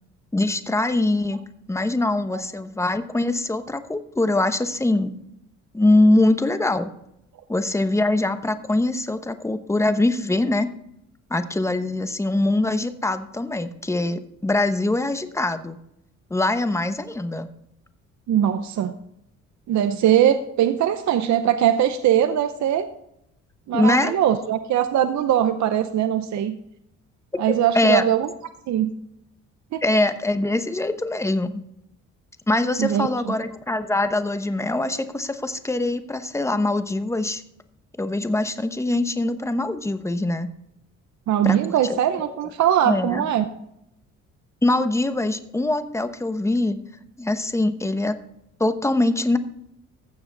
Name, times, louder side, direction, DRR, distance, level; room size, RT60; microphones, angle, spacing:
voice 1, 0.3-1.4 1.7-5.2 5.7-6.9 7.5-10.7 11.3-15.8 16.3-17.5 23.7-24.2 27.7-28.1 29.8-31.6 32.5-37.4 38.0-40.5 41.4-41.6 42.9-43.2 44.6-46.8 47.2-48.2 48.6-49.4, left 2 dB, 10° left, 10 dB, 0.9 m, -23 dB
voice 2, 18.3-18.9 19.7-22.9 23.7-26.6 27.4-28.3 28.7-28.9 29.7-29.8 32.8-33.3 41.3-43.5, right 10 dB, 70° right, 10 dB, 0.8 m, -21 dB
15.5 x 7.0 x 4.0 m, 0.78 s
cardioid pair, 90°, 30 cm